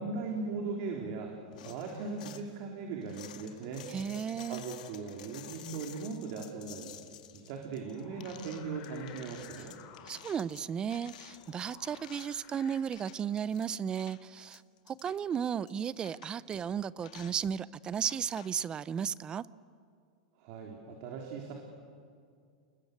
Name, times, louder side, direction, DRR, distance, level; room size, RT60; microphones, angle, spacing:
voice 1, 0.0-1.4 1.6-3.9 4.4-6.9 7.3-9.8 20.4-21.5, right 4 dB, 55° right, 1 dB, 3.6 m, -39 dB
sound 1, 1.5-2.5 3.0-12.5 12.8-13.7 13.9-15.2 15.7-15.8 16.0-16.6 17.0-17.4 18.0-18.5, left 11 dB, 75° left, 1.9 m, -51 dB
voice 2, 3.9-4.6 10.1-14.6 14.9-19.4, right 8 dB, 20° right, 20 dB, 0.6 m, -34 dB
sound 2, 7.8-12.8, left 9 dB, 40° left, 3.6 m, -55 dB
30.0 x 21.0 x 8.1 m, 2.3 s
supercardioid pair, 140°, 4 cm